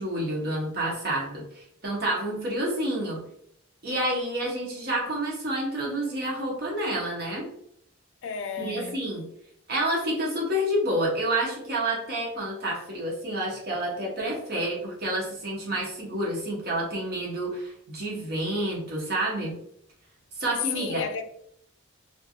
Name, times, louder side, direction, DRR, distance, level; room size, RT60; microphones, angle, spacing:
voice 1, 0.0-3.2 3.8-7.5 8.6-9.2 9.7-19.5 20.3-21.0, right 1 dB, 50° right, 1.0 m, -29 dB
voice 2, 8.2-9.0 20.7-21.3, left 5 dB, 60° left, 0.3 m, -34 dB
3.2 x 2.6 x 2.3 m
head